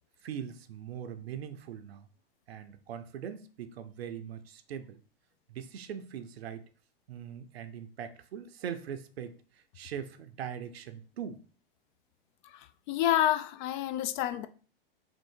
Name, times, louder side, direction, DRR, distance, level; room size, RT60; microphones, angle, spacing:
voice 1, 0.2-2.1 2.5-5.0 5.5-6.6 7.1-11.4, right 8 dB, 90° right, 0.6 m, -41 dB
voice 2, 12.5-14.5, left 12 dB, 50° left, 0.5 m, -29 dB
3.6 x 2.5 x 4.4 m
hypercardioid pair, 115°, 30 cm